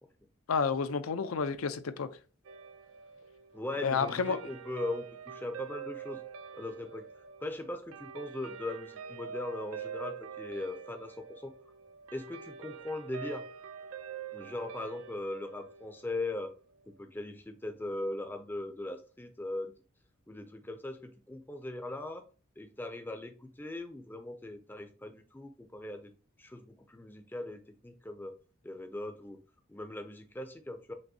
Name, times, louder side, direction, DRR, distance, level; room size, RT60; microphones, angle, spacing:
voice 1, 0.5-2.1 3.8-4.4, left 5 dB, 85° left, 0.5 m, -30 dB
Guitar, 2.4-17.0, right 7 dB, 80° right, 0.4 m, -46 dB
voice 2, 3.5-6.2 6.5-7.1 7.4-11.5 12.1-13.5 14.3-16.5 16.9-19.7 20.3-22.2 22.6-26.1 26.4-28.3 28.6-29.4 29.7-30.9, left 2 dB, 10° left, 0.4 m, -39 dB
6.1 x 2.6 x 2.7 m
head